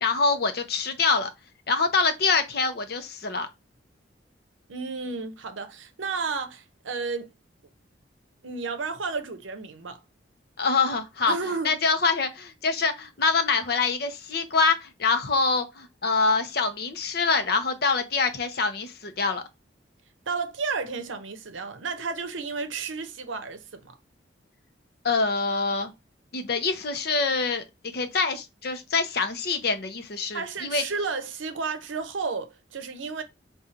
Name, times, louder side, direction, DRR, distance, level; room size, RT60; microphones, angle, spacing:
voice 1, 0.0-1.3 1.7-3.5 10.6-11.4 11.6-19.4 25.0-25.9 26.3-27.6 27.9-30.8, left 4 dB, 55° left, 0.6 m, -25 dB
voice 2, 4.7-7.3 8.4-10.0 11.3-11.8 20.3-23.9 30.3-33.2, right 4 dB, 85° right, 0.7 m, -32 dB
4.9 x 2.4 x 2.7 m
head